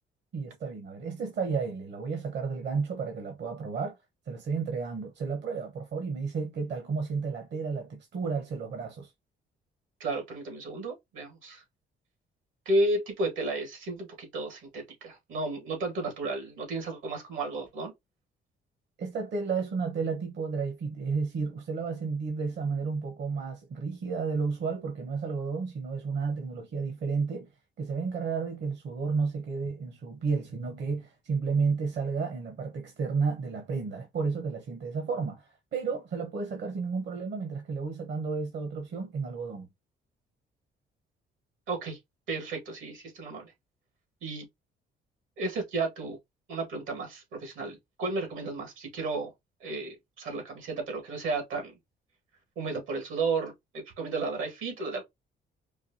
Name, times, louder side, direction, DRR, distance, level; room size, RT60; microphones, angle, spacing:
voice 1, 0.3-4.0 4.3-9.1 19.0-27.5 27.8-39.7, right 5 dB, 60° right, 1.0 m, -32 dB
voice 2, 10.0-11.6 12.7-17.9 41.7-42.0 42.3-43.5 44.2-44.5 45.4-46.2 46.5-49.3 49.6-51.7 52.6-55.0, right 2 dB, 85° right, 1.8 m, -33 dB
4.6 x 2.4 x 2.7 m
cardioid pair, 90°, 20 cm